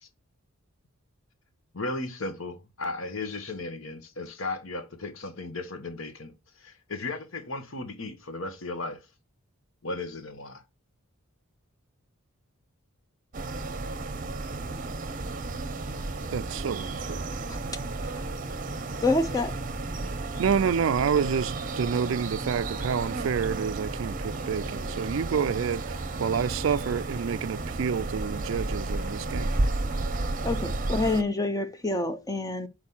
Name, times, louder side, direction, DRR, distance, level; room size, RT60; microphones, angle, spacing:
voice 1, 1.7-9.0 9.8-10.6, left 2 dB, 60° left, 1.3 m, -35 dB
sound 1, 13.3-31.2, right 2 dB, 35° right, 0.7 m, -32 dB
voice 2, 16.3-17.3 20.0-20.1 20.4-29.5, right 6 dB, 60° right, 0.3 m, -28 dB
voice 3, 19.0-19.5 30.4-32.7, left 2 dB, 15° left, 0.6 m, -27 dB
6.2 x 4.8 x 5.5 m
head